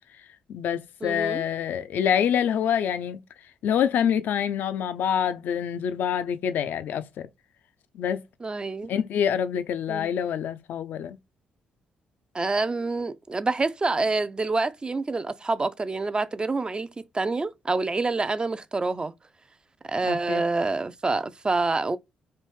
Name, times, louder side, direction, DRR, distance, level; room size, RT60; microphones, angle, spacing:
voice 1, 0.5-3.2 3.6-7.3 7.9-8.2 8.9-11.2 20.1-20.4, left 8 dB, 65° left, 0.4 m, -26 dB
voice 2, 1.0-1.4 8.4-8.9 9.9-10.1 12.3-19.1 19.8-22.0, right 3 dB, 25° right, 0.4 m, -27 dB
3.2 x 2.6 x 3.2 m
hypercardioid pair, 45°, 4 cm